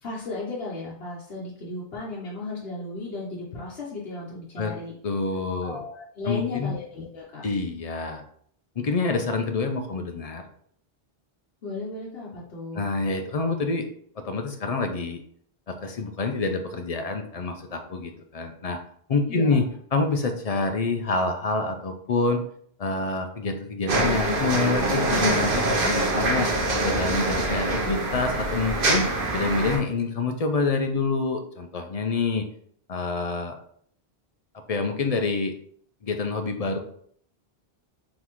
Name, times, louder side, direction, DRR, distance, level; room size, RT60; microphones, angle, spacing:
voice 1, 0.0-4.9 5.6-7.5 11.6-12.9 19.3-19.6, left 2 dB, 75° left, -5 dB, 1.1 m, -35 dB
voice 2, 5.0-5.8 6.3-6.7 7.4-8.2 8.8-10.4 12.7-13.9 14.2-15.2 15.7-18.8 19.1-22.4 22.8-26.5 26.8-32.5 32.9-33.5 34.7-35.5 36.0-36.8, left 3 dB, 50° left, 6 dB, 0.5 m, -27 dB
sound 1, 23.9-29.8, right 2 dB, 60° right, 1.0 m, -24 dB
3.9 x 3.6 x 3.0 m, 0.63 s
omnidirectional pair, 1.0 m